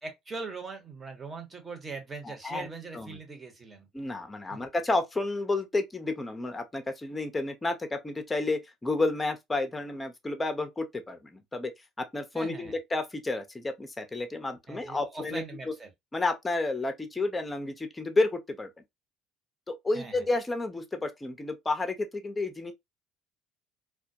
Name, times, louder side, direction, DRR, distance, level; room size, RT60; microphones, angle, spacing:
voice 1, 0.0-3.9 4.5-4.6 12.3-12.8 14.7-15.9 19.9-20.2, right 4 dB, 30° right, 1.0 m, -41 dB
voice 2, 2.2-2.7 2.9-3.1 3.9-11.7 12.0-15.7 16.1-18.7 19.7-22.7, left 2 dB, 20° left, 0.6 m, -31 dB
2.2 x 2.1 x 2.6 m
supercardioid pair, 80°, 0 cm